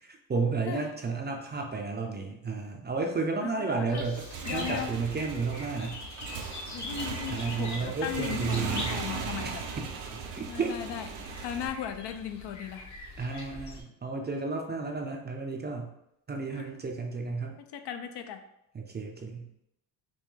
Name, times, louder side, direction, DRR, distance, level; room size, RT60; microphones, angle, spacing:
voice 1, 0.0-4.3 4.5-6.0 7.3-9.0 9.8-10.8 13.2-15.9 16.3-17.5 18.7-19.5, right 4 dB, 20° right, 2 dB, 0.5 m, -32 dB
sound 1, 3.9-13.8, left 3 dB, 40° left, 0.9 m, -43 dB
Motorcycle / Engine, 4.2-11.7, right 5 dB, 80° right, 0.8 m, -38 dB
voice 2, 4.5-4.9 6.7-9.6 10.5-11.1 11.4-12.9 16.5-16.7 17.6-18.4, left 9 dB, 60° left, 7 dB, 0.6 m, -37 dB
5.3 x 2.2 x 3.2 m, 0.82 s
cardioid pair, 105°, 46 cm